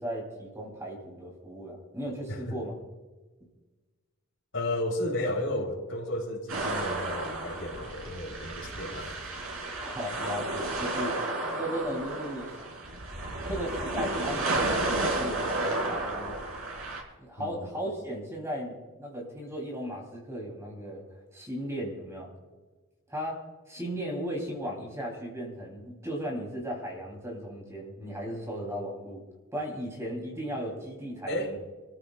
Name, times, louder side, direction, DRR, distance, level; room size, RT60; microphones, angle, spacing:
voice 1, 0.0-2.8 9.8-11.2 11.5-12.5 13.5-16.5 17.2-21.0 21.3-22.3 23.1-29.3 29.5-31.6, equal, 15° right, -1 dB, 3.6 m, -36 dB
voice 2, 4.5-9.1 17.4-17.6 31.3-31.5, left 1 dB, 65° left, -1 dB, 4.7 m, -33 dB
sound 1, 6.5-17.0, right 2 dB, 75° right, 3.9 m, -32 dB
28.0 x 14.5 x 2.5 m, 1.3 s
head